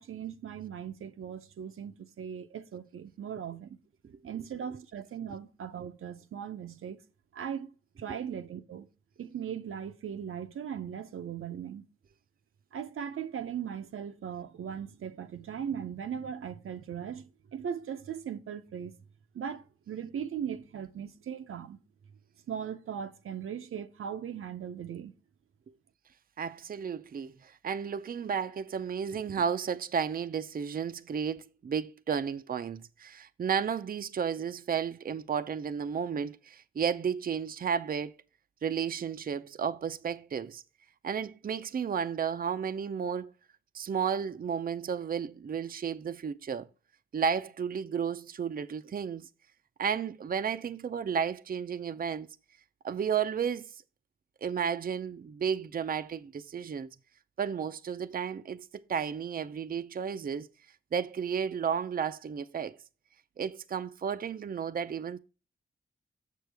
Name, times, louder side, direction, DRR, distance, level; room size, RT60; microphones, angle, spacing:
voice 1, 0.0-3.8 4.2-7.0 7.3-7.7 8.0-8.9 9.2-11.8 12.7-18.9 19.3-21.8 22.5-25.1, right 8 dB, 85° right, 0.7 m, -38 dB
voice 2, 26.4-38.1 38.6-40.6 41.0-43.3 43.7-46.7 47.1-49.3 49.8-52.3 52.8-53.7 54.4-56.9 57.4-60.5 60.9-62.7 63.4-65.2, right 7 dB, 45° right, 0.5 m, -33 dB
6.9 x 6.5 x 3.4 m
cardioid pair, 80°, 21 cm